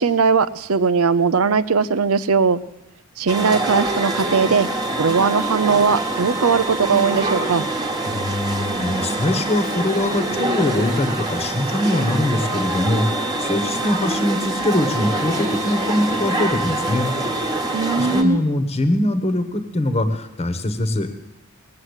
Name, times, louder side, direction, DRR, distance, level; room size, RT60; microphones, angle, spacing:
voice 1, 0.0-2.6 3.2-4.7 5.0-7.6 17.7-18.4, right 5 dB, 85° right, 15 dB, 0.7 m, -19 dB
sound 1, 3.3-18.2, right 2 dB, 20° right, 1.4 m, -25 dB
voice 2, 8.0-17.1 18.0-21.1, left 1 dB, 30° left, 9 dB, 1.2 m, -22 dB
19.5 x 7.7 x 8.1 m, 0.92 s
head